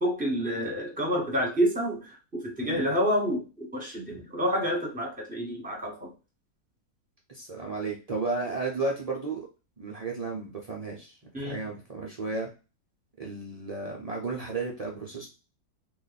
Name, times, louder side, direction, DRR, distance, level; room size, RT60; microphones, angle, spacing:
voice 1, 0.0-6.1 11.3-11.6, equal, 5° right, -1 dB, 0.9 m, -28 dB
voice 2, 7.3-9.5 9.8-11.2 11.4-12.5 13.2-15.3, right 3 dB, 60° right, -2 dB, 0.4 m, -33 dB
3.0 x 2.5 x 4.0 m, 0.32 s
omnidirectional pair, 1.7 m